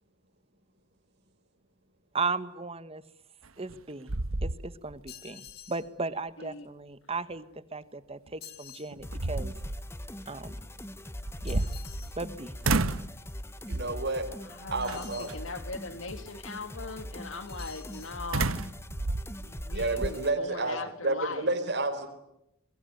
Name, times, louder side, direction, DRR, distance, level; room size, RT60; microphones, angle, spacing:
voice 1, 2.1-3.0 3.6-4.1 4.4-9.5 10.3-10.6 11.4-11.7 12.2-12.5, right 3 dB, 30° right, 14 dB, 1.3 m, -36 dB
sound 1, 3.4-3.8 4.1-5.1 5.5-5.6 8.3-8.4 8.9-9.8 11.2-12.3 12.6-13.1 13.7-14.1 14.9-15.3 18.3-20.2, right 2 dB, 85° right, 1.2 m, -31 dB
sound 2, 5.1-5.9 8.4-8.9 11.5-12.2 14.8-15.4 17.5-18.2, left 10 dB, 50° left, 2.6 m, -48 dB
sound 3, 9.0-20.3, left 1 dB, 10° left, 1.1 m, -42 dB
voice 2, 13.7-14.3 14.7-15.3 19.7-20.8 21.0-22.1, right 2 dB, 55° right, 7 dB, 4.3 m, -30 dB
voice 3, 14.4-18.7 19.4-21.5, left 3 dB, 65° left, 9 dB, 2.8 m, -40 dB
27.5 x 21.5 x 9.3 m, 0.84 s
head